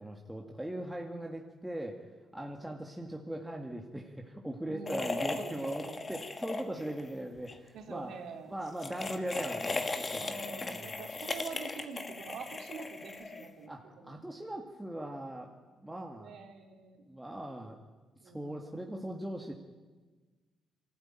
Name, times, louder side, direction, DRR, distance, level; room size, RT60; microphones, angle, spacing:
voice 1, 0.0-2.0 2.3-8.2 8.5-11.0 13.7-15.5 15.8-16.3 17.1-17.8 18.3-19.5, right 1 dB, 5° right, 1 dB, 2.0 m, -40 dB
voice 2, 4.7-6.3 7.7-8.7 10.2-14.3 16.2-17.0 18.2-19.0, right 4 dB, 75° right, 3 dB, 3.5 m, -46 dB
sound 1, 4.9-7.1 7.3-7.6 8.7-13.6, left 3 dB, 30° left, 2.0 m, -37 dB
24.5 x 13.5 x 9.1 m, 1.3 s
cardioid pair, 90°, 0 cm